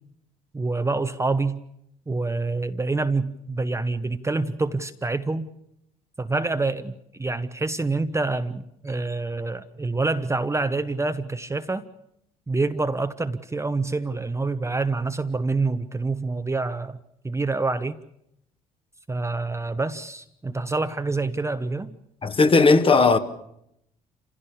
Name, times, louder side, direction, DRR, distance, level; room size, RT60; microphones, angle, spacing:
voice 1, 0.5-1.6 2.1-5.5 6.2-11.9 12.5-17.0 17.2-18.0 19.1-22.0, right 3 dB, 15° right, 0.9 m, -26 dB
voice 2, 22.2-23.2, left 3 dB, 30° left, 1.8 m, -16 dB
27.5 x 16.5 x 7.1 m
figure-of-eight pair, 50°, 18 cm